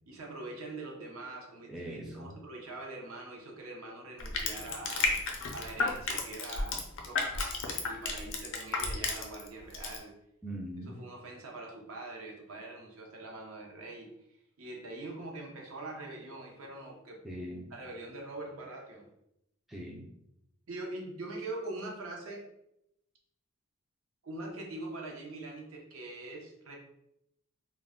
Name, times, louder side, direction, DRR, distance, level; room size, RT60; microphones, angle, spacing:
voice 1, 0.1-5.2 5.5-10.1 11.0-17.2 17.7-19.1 20.7-22.5 24.2-26.8, right 2 dB, 65° right, 0 dB, 0.7 m, -43 dB
voice 2, 1.7-2.4 10.4-11.0 17.2-17.7 19.7-20.1, right 1 dB, ahead, -4 dB, 0.3 m, -41 dB
Crushing, 4.2-9.5 9.7-10.0, left 4 dB, 60° left, 0.5 m, -32 dB
2.3 x 2.0 x 3.5 m, 0.80 s
head